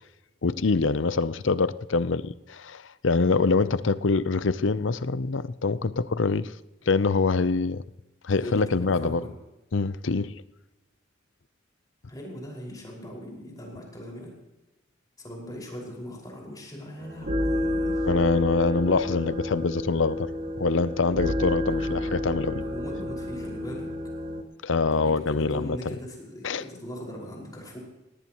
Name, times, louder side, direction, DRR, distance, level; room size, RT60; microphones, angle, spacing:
voice 1, 0.4-6.5 6.9-7.8 8.2-9.2 9.7-10.4 18.0-20.3 20.6-22.6 24.6-25.8 26.4-26.6, left 4 dB, 70° left, 0.6 m, -25 dB
voice 2, 8.4-9.3 12.1-14.3 15.2-18.1 21.7-22.1 22.4-23.9 24.8-27.8, equal, 20° left, 5.4 m, -39 dB
sound 1, 17.0-24.4, left 1 dB, 45° right, 2.1 m, -30 dB
18.0 x 18.0 x 3.0 m
head